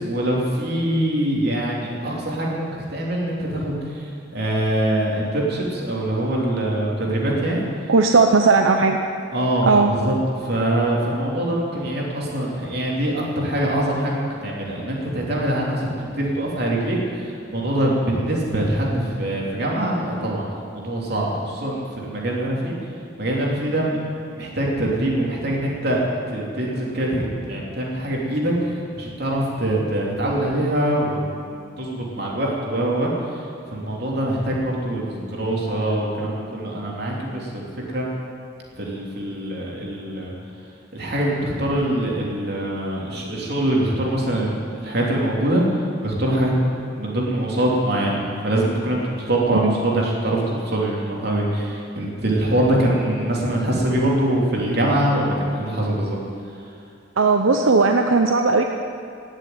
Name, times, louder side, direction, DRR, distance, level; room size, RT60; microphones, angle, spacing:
voice 1, 0.0-7.6 9.3-20.4 20.7-22.7 23.2-24.0 24.3-26.0 26.3-31.2 31.8-38.1 38.8-40.3 40.9-46.5 46.9-56.2, right 1 dB, 55° right, -3 dB, 3.2 m, -23 dB
voice 2, 7.9-9.0 9.7-9.9 49.5-49.7 57.2-58.6, right 4 dB, 85° right, 4 dB, 0.7 m, -17 dB
17.0 x 7.5 x 9.4 m, 2.5 s
head